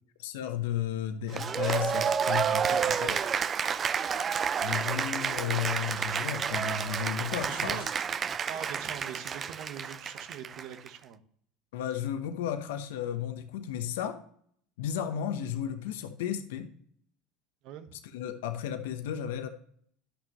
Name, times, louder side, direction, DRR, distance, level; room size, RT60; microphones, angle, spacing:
voice 1, 0.2-3.2 4.6-7.9 11.7-14.2 14.8-16.7 18.1-19.5, left 9 dB, 85° left, 8 dB, 0.9 m, -33 dB
Cheering / Applause, 1.3-10.9, right 7 dB, 35° right, 0.4 m, -30 dB
voice 2, 7.5-7.9 8.5-11.2 17.6-18.0, right 9 dB, 60° right, 10 dB, 1.0 m, -42 dB
11.5 x 6.1 x 3.1 m, 0.62 s
supercardioid pair, 100°, 0 cm